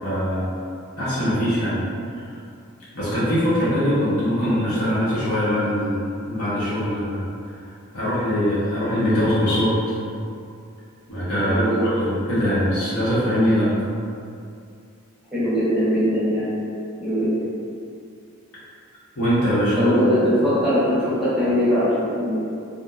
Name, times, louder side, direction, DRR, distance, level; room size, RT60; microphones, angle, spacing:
voice 1, 0.0-0.5 1.0-1.8 2.1-2.3 2.9-7.2 7.9-9.8 11.1-13.7 19.1-19.9, equal, 75° left, -10 dB, 0.9 m, -22 dB
voice 2, 11.5-11.9 15.3-16.5 17.0-17.4 19.8-22.4, equal, 5° right, -12 dB, 0.6 m, -21 dB
2.7 x 2.1 x 2.3 m, 2.5 s
head